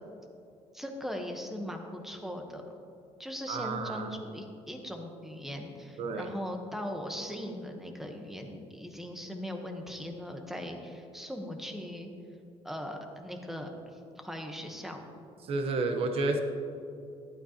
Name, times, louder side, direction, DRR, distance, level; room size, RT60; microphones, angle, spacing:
voice 1, 0.7-2.6 3.2-12.1 12.6-15.0, equal, 5° right, 3 dB, 1.0 m, -39 dB
voice 2, 3.5-4.1 6.0-6.3 15.4-16.4, right 3 dB, 55° right, 5 dB, 1.0 m, -30 dB
12.0 x 11.0 x 2.9 m, 2.6 s
cardioid pair, 140°, 12 cm